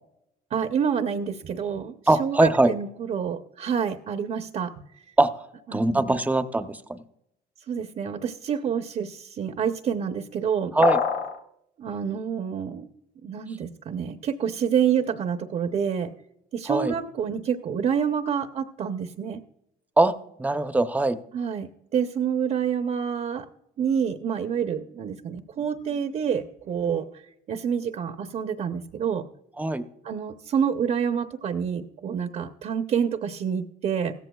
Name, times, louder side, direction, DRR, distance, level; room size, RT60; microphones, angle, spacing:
voice 1, 0.5-4.7 5.7-6.2 7.7-10.7 11.8-12.9 13.2-16.1 16.5-19.4 21.3-23.5 23.8-27.1 27.5-29.3 30.0-34.1, right 7 dB, 50° right, 7 dB, 0.8 m, -28 dB
voice 2, 2.1-2.7 5.2-5.4 5.7-7.0 10.7-11.0 16.7-16.9 20.0-20.1 20.4-21.2 29.6-29.9, right 2 dB, 10° right, 10 dB, 0.7 m, -21 dB
sound 1, 10.8-11.4, left 6 dB, 75° left, 1.3 m, -24 dB
16.0 x 14.5 x 2.3 m, 0.81 s
cardioid pair, 110°, 17 cm